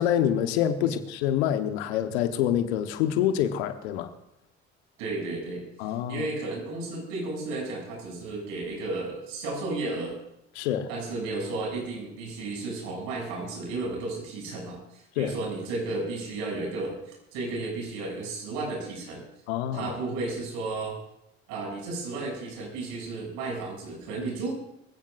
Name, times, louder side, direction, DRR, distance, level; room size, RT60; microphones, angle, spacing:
voice 1, 0.0-4.1 5.8-6.3 10.5-10.9 15.2-15.3 19.5-19.9, left 10 dB, 75° left, 9 dB, 1.3 m, -26 dB
voice 2, 5.0-10.1 10.9-19.2 19.7-21.0 21.5-24.5, right 3 dB, 70° right, -1 dB, 7.5 m, -33 dB
25.5 x 16.0 x 2.6 m, 0.81 s
hypercardioid pair, 60°, 33 cm